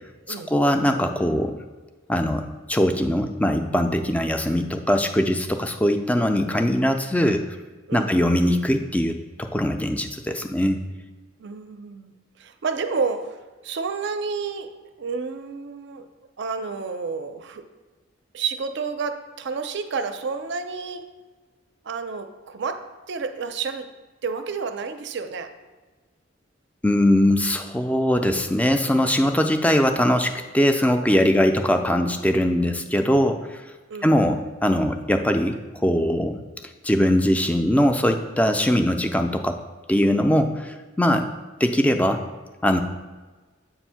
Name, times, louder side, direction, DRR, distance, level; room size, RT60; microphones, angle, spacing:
voice 1, 0.3-1.6 2.1-7.6 7.9-10.8 26.8-33.6 34.0-36.4 36.8-39.6 39.9-41.3 41.6-42.2 42.6-42.8, left 1 dB, 5° left, 6 dB, 0.3 m, -21 dB
voice 2, 7.9-8.2 11.4-16.1 16.4-17.7 18.3-21.1 21.8-23.9 24.2-25.5 31.4-31.6 33.9-34.4, right 5 dB, 60° right, 9 dB, 0.5 m, -30 dB
7.8 x 2.6 x 5.6 m, 1.3 s
head